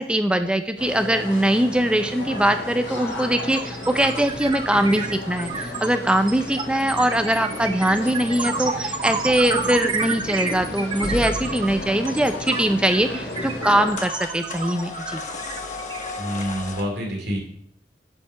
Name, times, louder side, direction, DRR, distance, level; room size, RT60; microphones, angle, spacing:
voice 1, 0.0-15.2, right 1 dB, 5° right, 8 dB, 0.4 m, -22 dB
sound 1, 0.8-13.9, left 2 dB, 80° left, 2.8 m, -34 dB
sound 2, 1.9-2.0 2.3-16.7, right 4 dB, 25° right, 0.8 m, -30 dB
sound 3, 3.8-16.8, left 2 dB, 45° left, 1.1 m, -38 dB
voice 2, 16.2-17.4, equal, 70° right, -1 dB, 2.7 m, -27 dB
9.5 x 5.6 x 5.6 m, 0.71 s
head